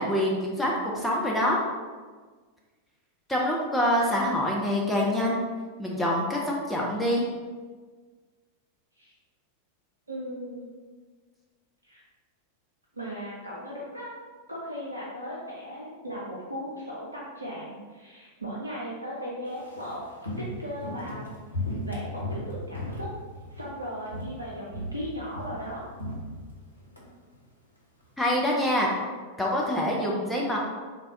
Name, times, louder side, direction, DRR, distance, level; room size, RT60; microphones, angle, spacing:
voice 1, 0.0-1.6 3.3-5.4 5.8-7.2 28.2-28.9 29.4-30.6, left 1 dB, 5° left, -3 dB, 0.5 m, -25 dB
voice 2, 10.1-10.7 11.9-12.0 12.9-14.1 14.5-20.0 20.4-21.2 21.8-23.1 23.5-25.8, equal, 80° right, -5 dB, 0.5 m, -37 dB
Walk footsteps, 19.5-23.8 24.1-24.4 24.7-27.0 27.3-27.4, left 1 dB, 85° left, 0.7 m, -36 dB
3.3 x 2.2 x 3.7 m, 1.5 s
figure-of-eight pair, 90°, 0 cm